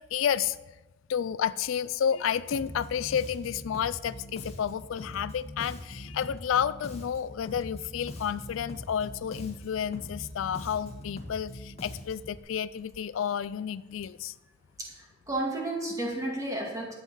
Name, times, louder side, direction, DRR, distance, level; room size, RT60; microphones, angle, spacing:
voice 1, 0.1-0.6 1.1-14.3, left 8 dB, 70° left, 16 dB, 0.3 m, -31 dB
Bass guitar, 2.5-12.4, left 1 dB, 30° left, 1.5 m, -42 dB
voice 2, 14.8-16.9, right 1 dB, 15° right, -1 dB, 2.1 m, -32 dB
11.5 x 7.8 x 5.5 m, 1.1 s
head